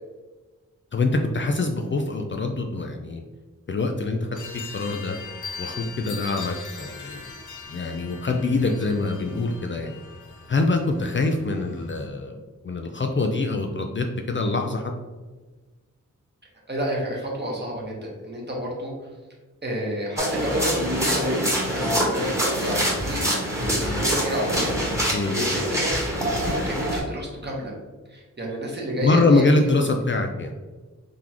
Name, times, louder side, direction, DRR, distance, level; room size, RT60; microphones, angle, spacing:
voice 1, 0.9-3.2 3.7-4.2 4.7-5.2 5.6-7.3 7.7-9.9 10.5-12.4 12.6-14.9 25.1-25.3 29.0-30.5, left 3 dB, 40° left, 3 dB, 0.4 m, -24 dB
sound 1, 4.3-12.1, left 5 dB, 75° left, 0.8 m, -40 dB
voice 2, 16.7-18.9 19.6-21.4 21.6-23.2 23.6-25.9 26.2-27.7 28.1-29.4, equal, 35° right, -2 dB, 1.2 m, -30 dB
sound 2, 20.2-27.0, equal, 10° right, 1.3 m, -25 dB
3.9 x 3.6 x 2.9 m, 1.3 s
wide cardioid pair, 70°, 31 cm